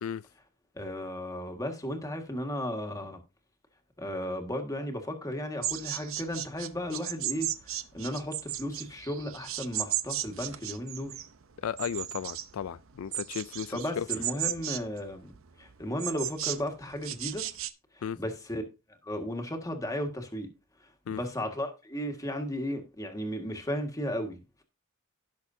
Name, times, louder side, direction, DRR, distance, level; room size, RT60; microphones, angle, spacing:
voice 1, 0.7-3.2 4.0-11.2 13.7-15.3 15.6-17.5 17.9-18.6 19.0-20.5 21.1-24.6, equal, 15° left, 1.7 m, -35 dB
sound 1, 5.6-17.7, right 12 dB, 70° right, 0.7 m, -35 dB
voice 2, 11.6-14.1 18.0-18.2 21.1-21.2, left 8 dB, 80° left, 0.4 m, -35 dB
16.5 x 6.3 x 2.7 m
head